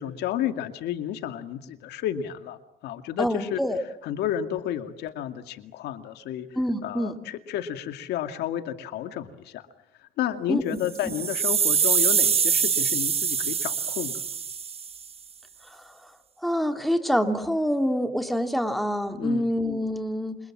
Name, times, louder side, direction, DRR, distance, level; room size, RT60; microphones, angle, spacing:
voice 1, 0.0-3.6 4.0-6.5 6.8-9.6 10.0-14.1 19.2-19.5, left 11 dB, 80° left, 8 dB, 2.3 m, -31 dB
voice 2, 3.2-3.8 6.5-7.2 10.5-10.6 11.0-11.1 15.6-16.1 16.4-20.4, equal, ahead, 6 dB, 2.9 m, -26 dB
sound 1, 10.8-15.0, right 7 dB, 35° right, 1.0 m, -24 dB
29.0 x 27.5 x 7.5 m, 0.80 s
cardioid pair, 110°, 17 cm